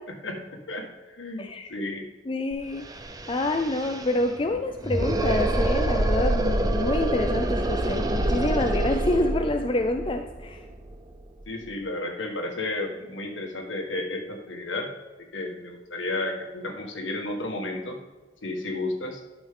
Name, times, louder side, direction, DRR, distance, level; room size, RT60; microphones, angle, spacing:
voice 1, 0.7-2.1 11.5-14.9 15.2-18.0 18.4-19.2, left 2 dB, 85° left, 2 dB, 1.7 m, -32 dB
voice 2, 1.4-1.7 2.3-2.8 3.3-10.6, left 2 dB, 30° left, 5 dB, 0.5 m, -27 dB
sound 1, 2.5-2.6 2.8-11.6, right 1 dB, 20° right, 0.7 m, -27 dB
12.0 x 6.4 x 3.8 m, 1.2 s
head